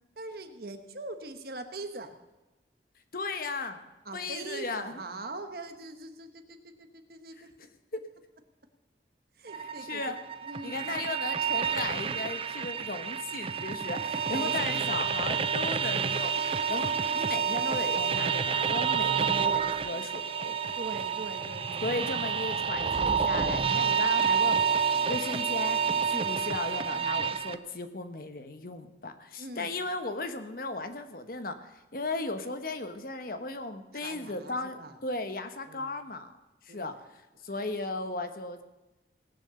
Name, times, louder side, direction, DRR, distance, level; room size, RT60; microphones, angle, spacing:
voice 1, 0.2-2.1 4.0-7.5 9.4-10.1 10.4-11.2 14.3-15.2 20.8-22.0 26.1-26.3 29.4-29.8 34.0-35.0 35.7-36.0 36.7-37.0, right 2 dB, 60° right, 7 dB, 1.3 m, -42 dB
voice 2, 3.1-3.8 4.1-5.0 7.4-7.5 7.9-8.0 9.8-10.2 10.6-20.5 21.8-24.8 25.1-36.3 36.6-36.9 37.4-38.6, left 2 dB, 55° left, 8 dB, 1.1 m, -36 dB
sound 1, 9.5-27.6, right 6 dB, 30° right, 0.4 m, -29 dB
sound 2, 15.8-27.0, equal, 75° left, 3.7 m, -58 dB
18.0 x 7.0 x 7.0 m, 1.0 s
head